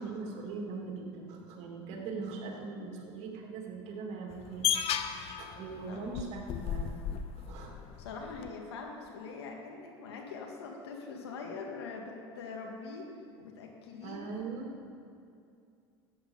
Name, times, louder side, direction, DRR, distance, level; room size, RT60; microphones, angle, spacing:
voice 1, 0.0-4.8 5.4-7.0 7.4-7.8 14.0-14.7, right 4 dB, 60° right, 0 dB, 2.6 m, -40 dB
sound 1, 4.3-8.5, left 9 dB, 50° left, 0.8 m, -35 dB
voice 2, 8.0-13.1 13.4-14.2, left 4 dB, 90° left, 1 dB, 1.8 m, -43 dB
13.0 x 9.2 x 5.5 m, 2.4 s
hypercardioid pair, 85°, 13 cm